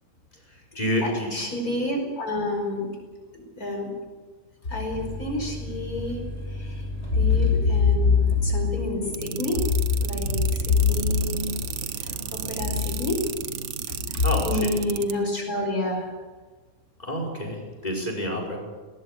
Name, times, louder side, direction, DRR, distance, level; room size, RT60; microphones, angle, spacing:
voice 1, 0.5-1.3 14.2-14.7 17.0-18.6, equal, 25° left, 1 dB, 5.6 m, -28 dB
voice 2, 1.0-2.9 3.3-3.9 4.7-6.8 7.1-11.6 11.9-13.2 13.9-16.1, left 4 dB, 80° left, 2 dB, 5.7 m, -25 dB
sound 1, 4.9-12.2 12.6-13.3, left 1 dB, 15° right, 5.9 m, -38 dB
sound 2, 7.1-15.1, right 3 dB, 50° right, 2.2 m, -39 dB
sound 3, 9.1-15.1, right 10 dB, 80° right, 1.4 m, -33 dB
19.5 x 19.0 x 8.2 m, 1.4 s
omnidirectional pair, 1.5 m